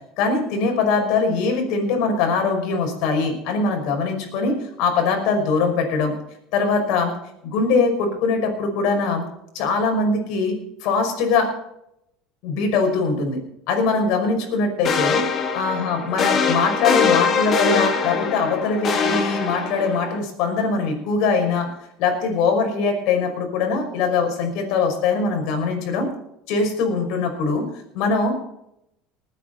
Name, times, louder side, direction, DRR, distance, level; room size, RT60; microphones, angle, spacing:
voice 1, 0.2-6.1 6.5-7.1 7.4-9.2 9.5-11.5 12.4-13.4 13.7-15.2 15.5-21.7 22.0-26.1 26.5-27.6 27.9-28.5, left 4 dB, 70° left, 3 dB, 5.6 m, -22 dB
sound 1, 14.8-20.2, left 5 dB, 40° left, 2.4 m, -22 dB
20.0 x 9.6 x 4.5 m, 0.79 s
supercardioid pair, 110°, 0 cm